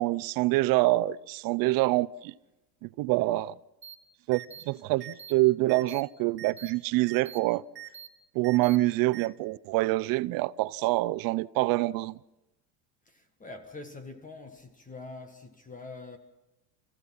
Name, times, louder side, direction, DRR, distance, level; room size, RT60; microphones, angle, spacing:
voice 1, 0.0-2.3 2.8-3.5 4.3-7.6 8.3-12.2, right 19 dB, 45° right, 0.6 m, -26 dB
sound 1, 3.8-3.9 4.3-4.6 5.0-5.3 5.7-6.0 6.4-6.7 7.1-7.4 7.7-8.1 8.4-8.8 9.1-9.3, right 11 dB, 25° right, 1.9 m, -43 dB
voice 2, 13.1-16.2, left 3 dB, 15° left, 1.8 m, -44 dB
29.5 x 15.5 x 5.8 m
supercardioid pair, 125°, 49 cm